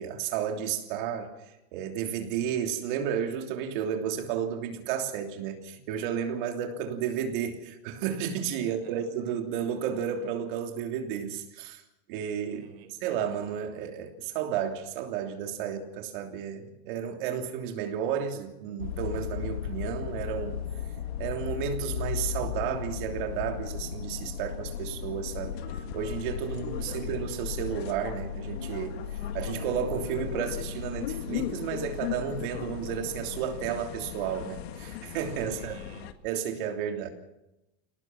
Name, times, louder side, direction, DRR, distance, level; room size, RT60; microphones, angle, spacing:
voice 1, 0.0-1.3 1.7-11.8 12.1-12.6 12.9-20.6 21.2-29.0 29.3-35.8 36.2-37.1, right 8 dB, 55° right, 4 dB, 3.2 m, -32 dB
voice 2, 8.6-9.1 12.5-12.9 26.5-27.1 35.5-36.1 37.0-37.1, right 7 dB, 80° right, 7 dB, 4.4 m, -51 dB
sound 1, 18.8-36.1, left 9 dB, 85° left, 1.8 m, -36 dB
26.0 x 18.5 x 6.1 m, 0.94 s
supercardioid pair, 180°, 31 cm